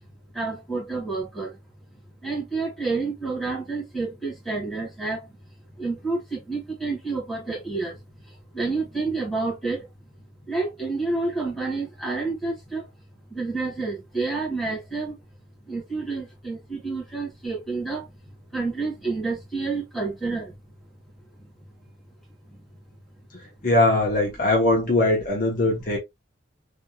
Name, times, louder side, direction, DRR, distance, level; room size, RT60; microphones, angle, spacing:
voice 1, 0.3-1.6 2.2-5.3 5.8-8.0 8.5-9.9 10.4-12.9 13.3-15.2 15.6-18.1 18.5-20.6, right 3 dB, ahead, 1.9 m, -29 dB
voice 2, 23.3-26.0, left 2 dB, 45° left, 0.9 m, -21 dB
3.5 x 2.8 x 2.2 m
head